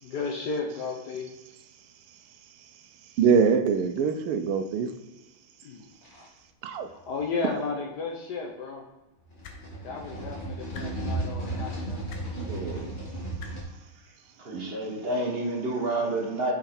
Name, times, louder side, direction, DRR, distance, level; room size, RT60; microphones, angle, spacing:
voice 1, 0.0-1.3 5.6-5.9 6.9-8.8 9.8-12.0, left 4 dB, 60° left, 1 dB, 1.2 m, -34 dB
voice 2, 3.2-4.9 6.6-6.9 12.4-13.0 14.5-14.8, right 6 dB, 80° right, 8 dB, 1.6 m, -24 dB
sound 1, 6.0-6.2 7.0-7.2 9.3-13.6, right 2 dB, 25° left, 1.6 m, -34 dB
sound 2, 9.4-9.6 10.7-10.9 12.1-12.2 13.4-13.5 14.8-14.9, left 6 dB, 85° left, 1.8 m, -43 dB
voice 3, 14.4-16.5, right 2 dB, 35° right, -1 dB, 1.0 m, -29 dB
6.2 x 6.0 x 4.3 m, 1.1 s
omnidirectional pair, 2.4 m